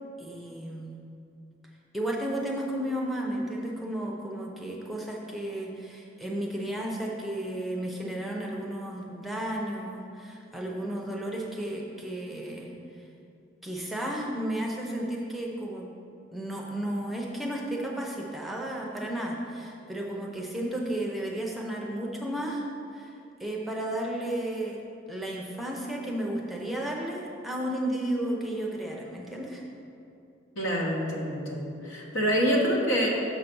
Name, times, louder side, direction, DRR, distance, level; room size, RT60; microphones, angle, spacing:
voice 1, 0.2-0.9 1.9-13.0 13.6-15.9 16.3-22.7 22.9-23.1 23.4-24.8 25.1-29.6, right 1 dB, ahead, -2 dB, 0.6 m, -33 dB
voice 2, 30.6-33.1, equal, 80° left, -2 dB, 1.4 m, -26 dB
6.9 x 5.7 x 5.3 m, 2.7 s
head